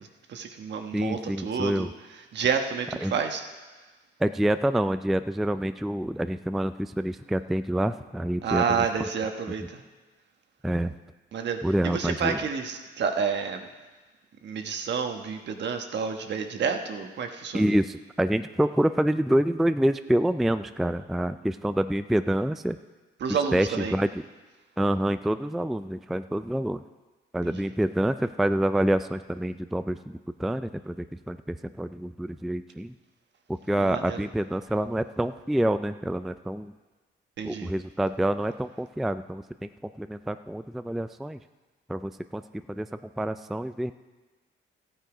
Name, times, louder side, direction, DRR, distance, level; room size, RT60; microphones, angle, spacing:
voice 1, 0.0-1.9 2.3-3.4 8.4-9.6 11.3-13.6 14.4-17.7 23.2-23.9 33.8-34.2 37.4-37.7, right 6 dB, 60° right, 5 dB, 1.3 m, -29 dB
voice 2, 0.9-1.9 3.0-3.1 4.2-8.9 9.6-9.7 10.6-10.9 11.6-12.4 17.5-22.8 23.3-24.2 24.8-26.8 27.3-32.9 33.7-36.7 37.4-41.4 41.9-42.4 42.7-42.9 43.2-43.9, right 1 dB, ahead, 11 dB, 0.3 m, -27 dB
14.0 x 9.2 x 5.0 m, 1.2 s
cardioid pair, 90°, 20 cm